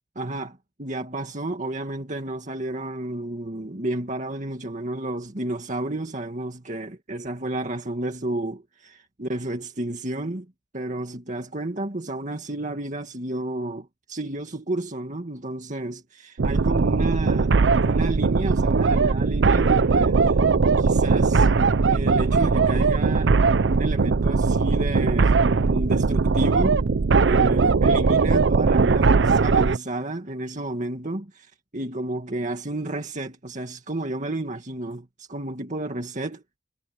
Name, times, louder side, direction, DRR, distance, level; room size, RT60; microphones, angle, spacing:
voice 1, 0.2-17.6 17.8-20.4 20.8-21.5 21.9-23.4 23.7-26.8 27.3-31.5 31.7-36.4, right 1 dB, 45° right, 2.1 m, -31 dB
sound 1, 16.4-29.8, right 4 dB, 85° right, 0.6 m, -19 dB
head